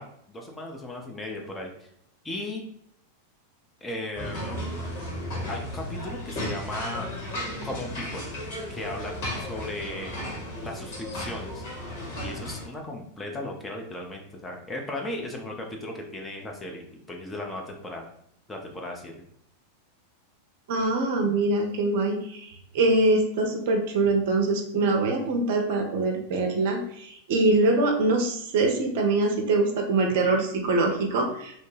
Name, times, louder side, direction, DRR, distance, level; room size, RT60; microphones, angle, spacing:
voice 1, 0.0-1.9 2.2-2.7 3.8-4.8 5.5-7.1 7.6-8.3 8.7-10.1 10.6-11.6 12.2-18.1 18.5-19.3, left 1 dB, 15° left, 1 dB, 0.5 m, -36 dB
sound 1, 4.1-12.7, left 1 dB, 50° left, 1.4 m, -34 dB
voice 2, 20.7-31.7, right 2 dB, 50° right, 3 dB, 0.5 m, -24 dB
2.7 x 2.1 x 3.2 m, 0.68 s
figure-of-eight pair, 90°, 0 cm